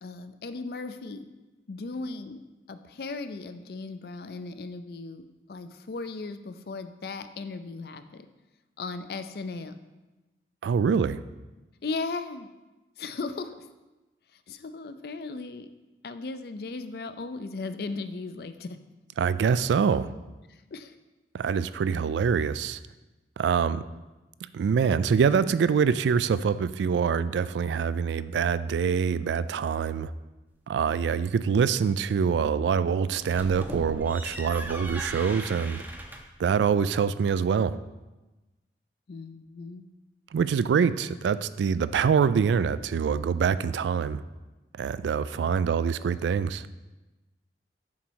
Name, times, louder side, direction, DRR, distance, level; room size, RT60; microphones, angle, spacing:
voice 1, 0.0-1.3 1.7-2.4 2.7-8.3 8.8-9.8 11.8-12.5 13.0-13.7 14.5-15.7 16.0-18.8 20.5-21.0 23.7-24.0 39.1-39.9 45.1-45.5, left 3 dB, 60° left, 10 dB, 0.4 m, -37 dB
voice 2, 10.6-11.2 19.2-20.1 21.3-22.8 23.4-23.8 24.5-30.1 30.7-35.8 36.4-37.8 40.3-44.2 44.8-46.7, right 6 dB, 80° right, 15 dB, 0.3 m, -25 dB
sound 1, 33.1-36.4, right 1 dB, 10° right, 0.5 m, -38 dB
7.2 x 5.2 x 4.6 m, 1.1 s
head